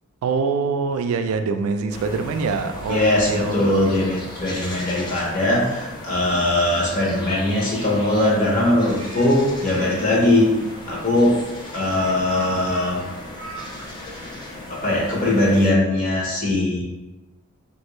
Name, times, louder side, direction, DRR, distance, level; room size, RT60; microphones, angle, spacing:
voice 1, 0.2-3.5 3.9-4.0, right 4 dB, 85° right, 9 dB, 0.3 m, -24 dB
sound 1, 1.9-15.7, left 1 dB, 20° left, 0.4 m, -37 dB
voice 2, 2.9-10.5 10.9-11.4 11.7-13.0 14.7-16.8, left 1 dB, 40° left, -4 dB, 0.8 m, -20 dB
Speech, 8.9-10.0 10.9-13.9, right 1 dB, 60° right, 0.7 m, -37 dB
2.9 x 2.5 x 3.1 m, 1.1 s
head